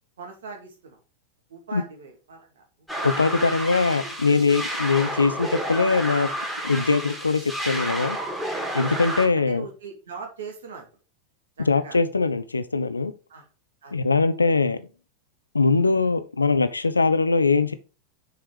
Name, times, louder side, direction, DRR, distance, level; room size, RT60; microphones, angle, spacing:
voice 1, 0.2-1.0 1.5-2.6 2.9-3.3 4.0-4.2 9.0-9.1 9.3-10.9 11.6-12.0 13.3-13.5 13.8-13.9, right 4 dB, 65° right, 2 dB, 2.3 m, -40 dB
sound 1, 2.9-9.3, right 1 dB, 5° right, 2.8 m, -30 dB
voice 2, 3.0-6.3 6.6-8.2 8.7-9.6 11.7-13.1 13.9-14.8 15.5-17.7, left 4 dB, 80° left, 13 dB, 0.6 m, -22 dB
6.6 x 4.6 x 4.9 m, 0.34 s
figure-of-eight pair, 90°, 0 cm